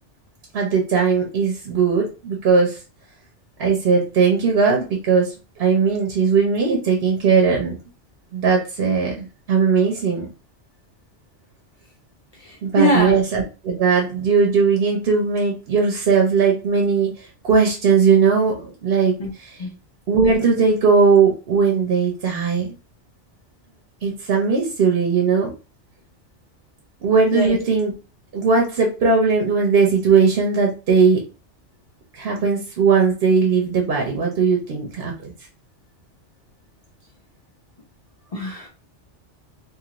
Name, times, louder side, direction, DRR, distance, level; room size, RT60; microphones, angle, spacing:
voice 1, 0.5-2.8 3.6-7.8 8.3-10.3 12.6-19.5 20.1-22.7 24.0-25.5 27.0-27.9 28.3-31.2 32.1-35.3, right 5 dB, 60° right, 0.9 m, -18 dB
voice 2, 12.3-13.2 19.2-19.3 19.6-19.7 27.3-27.6 38.3-38.7, left 1 dB, 45° left, 0.5 m, -22 dB
2.7 x 2.5 x 2.9 m
omnidirectional pair, 1.2 m